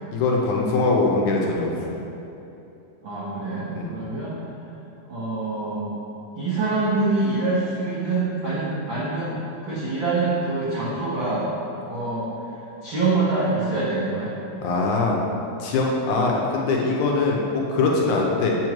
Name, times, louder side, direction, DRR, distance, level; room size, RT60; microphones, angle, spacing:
voice 1, 0.1-1.7 3.8-3.9 14.6-15.2 15.6-18.6, left 3 dB, 75° left, -2 dB, 2.0 m, -22 dB
voice 2, 3.0-4.4 5.1-5.9 6.3-11.5 11.7-12.3 12.8-14.3, right 3 dB, 80° right, -9 dB, 1.1 m, -25 dB
7.0 x 3.1 x 5.9 m, 2.9 s
omnidirectional pair, 3.7 m